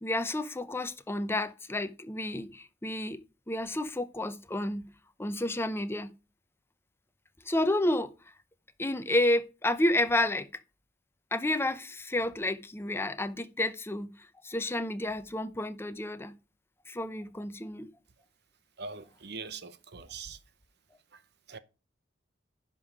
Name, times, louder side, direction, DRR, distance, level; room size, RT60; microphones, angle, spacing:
voice 1, 0.0-3.2 3.5-4.9 5.2-6.1 7.5-8.1 8.8-10.5 11.3-14.1 14.4-16.3 16.9-17.9, left 1 dB, 15° left, 0.7 m, -30 dB
voice 2, 18.8-20.4 21.1-21.2 21.5-21.6, right 4 dB, 60° right, 0.8 m, -42 dB
10.5 x 5.4 x 4.8 m
head